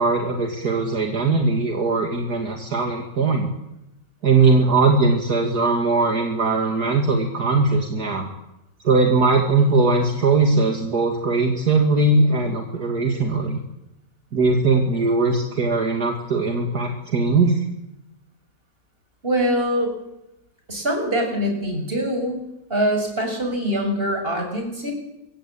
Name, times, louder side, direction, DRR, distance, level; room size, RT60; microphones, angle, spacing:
voice 1, 0.0-3.5 4.2-8.3 8.8-13.6 14.3-17.6, right 3 dB, 65° right, 3 dB, 2.9 m, -20 dB
voice 2, 19.2-19.9 20.7-22.4 22.7-24.9, equal, 30° right, 3 dB, 6.8 m, -23 dB
26.5 x 22.5 x 8.7 m, 0.91 s
omnidirectional pair, 1.9 m